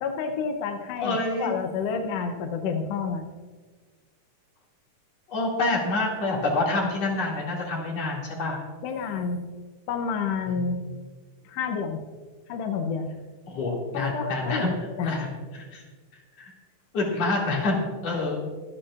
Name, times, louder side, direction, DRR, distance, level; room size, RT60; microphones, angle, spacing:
voice 1, 0.0-3.3 8.8-9.4 9.9-10.8 11.4-12.0 12.5-13.1 13.9-15.1, left 5 dB, 75° left, 5 dB, 1.5 m, -29 dB
voice 2, 1.0-1.5 5.3-8.6 10.5-10.7 13.5-14.7 15.0-15.3 15.5-15.8 16.4-16.5 16.9-18.4, left 2 dB, 55° left, -3 dB, 3.4 m, -27 dB
24.5 x 9.0 x 2.5 m, 1.4 s
omnidirectional pair, 3.7 m